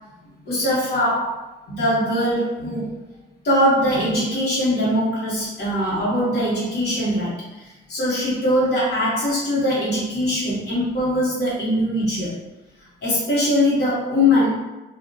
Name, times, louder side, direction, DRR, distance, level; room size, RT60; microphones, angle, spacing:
voice 1, 0.5-2.9 3.4-12.4 13.0-14.5, left 1 dB, 55° left, -7 dB, 1.0 m, -21 dB
2.3 x 2.1 x 2.6 m, 1.1 s
cardioid pair, 90°, 20 cm